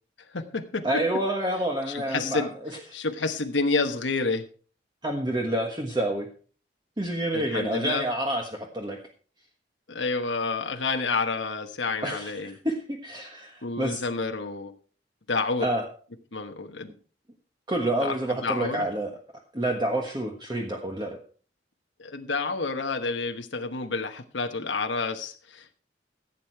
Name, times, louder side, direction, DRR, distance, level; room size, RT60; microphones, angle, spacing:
voice 1, 0.3-0.8 1.9-2.5 2.9-4.4 7.3-8.0 9.9-12.5 13.6-14.7 15.3-15.7 16.3-16.9 18.0-18.1 18.4-18.8 22.0-25.7, left 4 dB, 85° left, 6 dB, 1.2 m, -29 dB
voice 2, 0.8-2.8 5.0-6.3 7.0-9.0 12.0-14.0 15.6-15.8 17.7-19.2 19.5-21.2, right 1 dB, 25° right, 1 dB, 1.4 m, -28 dB
15.5 x 8.4 x 4.6 m, 0.42 s
head